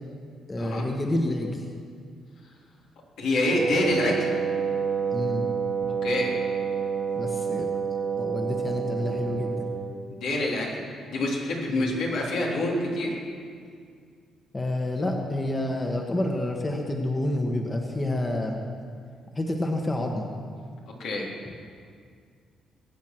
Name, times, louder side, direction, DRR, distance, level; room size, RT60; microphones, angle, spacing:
voice 1, 0.5-1.7 5.1-5.5 7.1-7.7 8.2-9.7 11.7-11.9 14.5-18.6 19.3-20.3, left 1 dB, 20° left, 2 dB, 1.5 m, -28 dB
voice 2, 3.2-4.3 6.0-6.3 10.1-10.8 11.1-13.1 21.0-21.3, left 1 dB, 80° left, -3 dB, 3.6 m, -26 dB
Wind instrument woodwind instrument, 3.5-10.1, right 6 dB, 45° right, 1.4 m, -28 dB
21.5 x 8.4 x 6.1 m, 2.1 s
cardioid pair, 90°, 0 cm